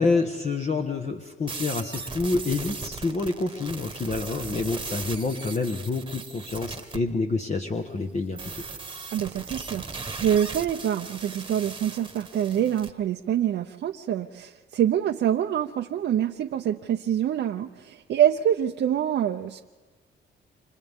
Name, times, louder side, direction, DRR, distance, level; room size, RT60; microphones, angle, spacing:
voice 1, 0.0-8.6, left 3 dB, 35° left, 3 dB, 1.3 m, -28 dB
sound 1, 1.5-7.0 8.4-12.9, right 4 dB, 25° right, 1.4 m, -37 dB
voice 2, 9.1-19.6, right 10 dB, 65° right, 4 dB, 0.7 m, -26 dB
29.5 x 25.5 x 3.7 m, 1.3 s
cardioid pair, 90°, 20 cm